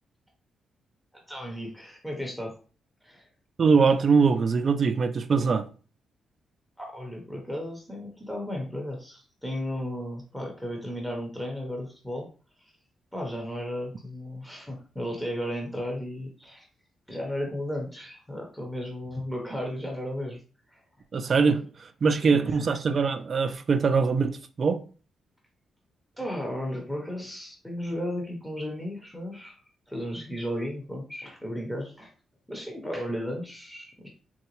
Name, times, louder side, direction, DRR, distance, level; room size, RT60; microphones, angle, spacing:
voice 1, 1.3-2.6 3.0-3.2 6.8-12.3 13.1-16.7 17.1-20.4 20.7-20.8 22.2-22.7 26.2-29.6 29.9-32.1 32.5-34.1, equal, 5° left, 0.7 m, -34 dB
voice 2, 3.6-5.6 21.1-21.6 22.0-24.8, right 5 dB, 45° right, 0.4 m, -22 dB
3.8 x 2.2 x 3.0 m
cardioid pair, 100°, 0 cm